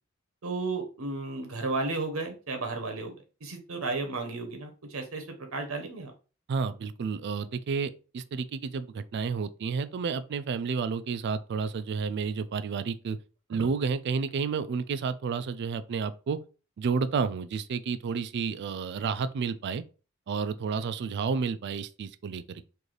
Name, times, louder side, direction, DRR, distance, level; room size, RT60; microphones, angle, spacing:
voice 1, 0.4-3.2 3.4-6.1, right 3 dB, 75° right, 0.8 m, -33 dB
voice 2, 6.5-13.2 13.5-16.4 16.8-19.8 20.3-22.7, right 5 dB, 55° right, 0.3 m, -31 dB
3.2 x 2.6 x 3.8 m
head